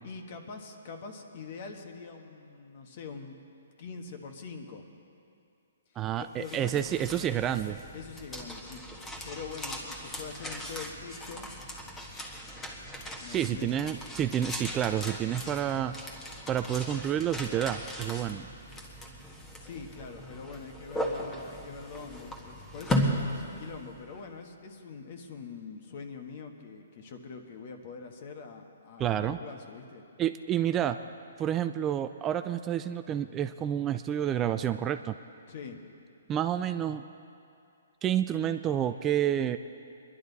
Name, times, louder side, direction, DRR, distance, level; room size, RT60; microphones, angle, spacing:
voice 1, 0.0-3.4 3.8-4.9 5.9-7.0 7.9-8.8 9.2-11.5 13.2-13.7 19.6-30.0 35.5-35.8, left 5 dB, 50° left, 5 dB, 1.5 m, -44 dB
voice 2, 6.0-7.8 13.3-16.0 16.5-18.5 29.0-29.4 30.2-31.0 31.4-35.1 36.3-37.0 38.0-39.6, right 10 dB, 20° right, 10 dB, 0.3 m, -29 dB
sound 1, 6.2-24.2, equal, 10° left, 1.4 m, -37 dB
22.0 x 11.5 x 4.1 m, 2.5 s
hypercardioid pair, 145°, 0 cm